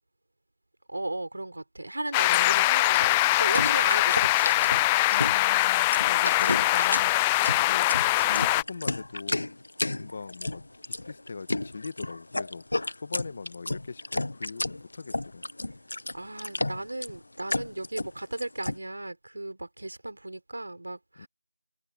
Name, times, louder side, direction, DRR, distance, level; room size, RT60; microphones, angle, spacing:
voice 1, 0.9-5.0 6.1-6.6 16.1-21.3, right 2 dB, 55° right, 4.3 m, -36 dB
sound 1, 2.1-8.6, left 19 dB, 5° left, 0.3 m, -23 dB
voice 2, 2.3-2.6 5.1-7.9 8.3-9.5 9.9-12.6 13.0-15.4 21.2-21.3, left 4 dB, 25° left, 1.4 m, -40 dB
sound 2, 2.8-18.8, left 2 dB, 50° left, 0.9 m, -32 dB
figure-of-eight pair, 175°, 0 cm